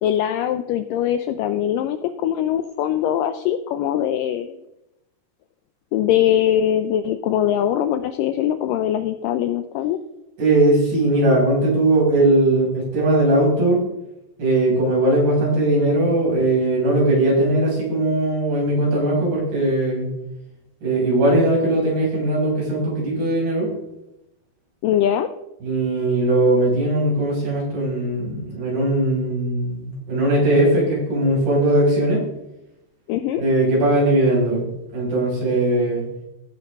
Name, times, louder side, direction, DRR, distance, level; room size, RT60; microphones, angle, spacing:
voice 1, 0.0-4.6 5.9-10.0 24.8-25.3 33.1-33.4, left 10 dB, 85° left, 10 dB, 1.9 m, -22 dB
voice 2, 10.4-13.8 14.4-20.1 20.8-23.7 25.6-32.2 33.4-34.7 34.9-36.0, right 1 dB, 75° right, -4 dB, 7.7 m, -19 dB
16.5 x 9.4 x 3.6 m, 0.89 s
omnidirectional pair, 4.5 m